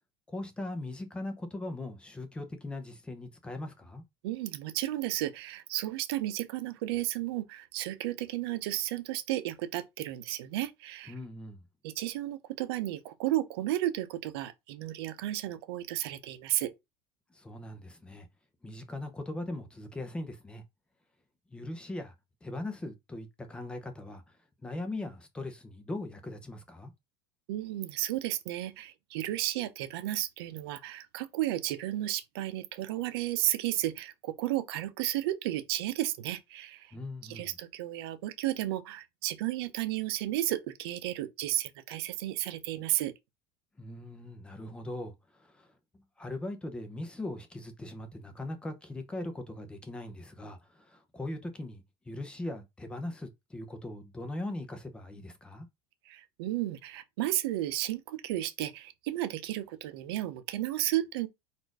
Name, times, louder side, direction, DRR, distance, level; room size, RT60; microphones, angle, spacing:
voice 1, 0.3-4.0 11.1-11.6 17.3-18.3 18.6-20.6 21.5-22.1 22.4-24.4 24.6-26.9 36.9-37.5 43.8-45.7 46.2-55.7, left 2 dB, 10° left, 0.7 m, -40 dB
voice 2, 4.2-11.1 11.8-16.7 27.5-36.9 37.2-43.1 56.1-61.3, right 14 dB, 80° right, 0.7 m, -33 dB
4.2 x 2.6 x 4.6 m
cardioid pair, 165°, 13 cm